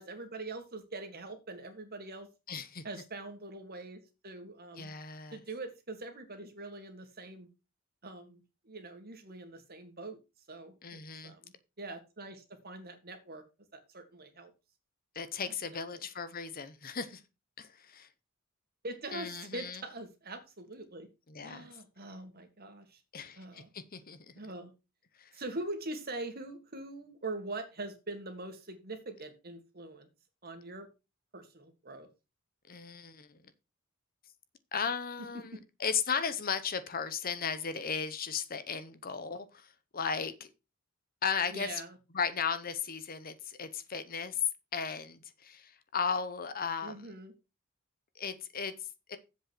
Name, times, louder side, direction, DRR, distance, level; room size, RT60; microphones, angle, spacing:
voice 1, 0.0-2.3 2.8-4.9 5.3-7.5 8.0-10.2 10.5-13.4 13.7-14.5 15.4-16.1 18.8-21.1 21.4-23.0 23.4-23.7 24.4-24.7 25.3-30.1 30.4-30.9 31.3-32.1 35.5-35.6 41.5-42.0 46.8-47.3, right 2 dB, 50° right, 2.0 m, -43 dB
voice 2, 2.5-2.8 4.8-5.4 10.8-11.3 15.1-17.2 17.6-18.1 19.1-19.8 21.3-21.7 23.1-24.4 25.2-25.3 32.7-33.4 34.7-40.5 41.2-41.8 42.1-44.4 44.7-46.9 48.1-48.7 49.1-49.2, left 6 dB, 45° left, 1.0 m, -36 dB
7.7 x 5.5 x 6.2 m
head